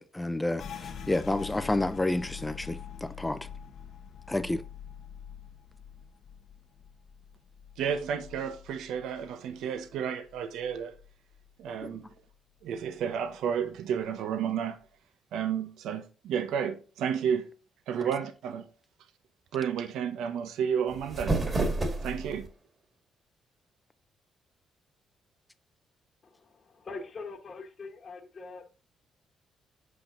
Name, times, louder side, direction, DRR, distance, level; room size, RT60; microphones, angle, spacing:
voice 1, 0.0-3.4 4.3-4.6 11.8-11.9, left 2 dB, 10° left, 0.6 m, -30 dB
sound 1, 0.6-10.0 10.3-11.5 11.8-12.3 12.8-13.4, left 7 dB, 65° left, 1.2 m, -45 dB
voice 2, 7.8-11.0 11.6-12.0 12.6-14.8 15.3-17.5 17.9-18.6 19.5-21.4 22.0-22.5, right 8 dB, 85° right, 0.9 m, -31 dB
sound 2, 20.9-22.5, right 2 dB, 35° right, 2.1 m, -29 dB
voice 3, 26.2-28.7, left 3 dB, 40° left, 1.4 m, -43 dB
7.9 x 5.9 x 3.8 m
cardioid pair, 90°, 0 cm